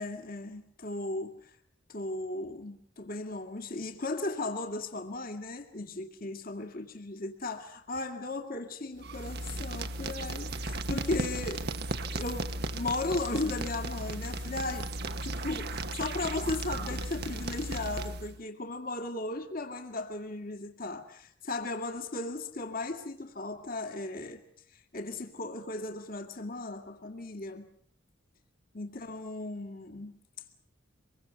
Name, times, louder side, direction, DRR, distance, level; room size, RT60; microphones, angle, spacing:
voice 1, 0.0-1.5 1.9-11.6 12.1-14.9 15.2-24.4 24.7-27.7 28.7-30.2, left 2 dB, 50° left, 2.3 m, -36 dB
sound 1, 9.0-18.4, right 2 dB, 55° right, 1.1 m, -36 dB
25.0 x 22.5 x 7.0 m
head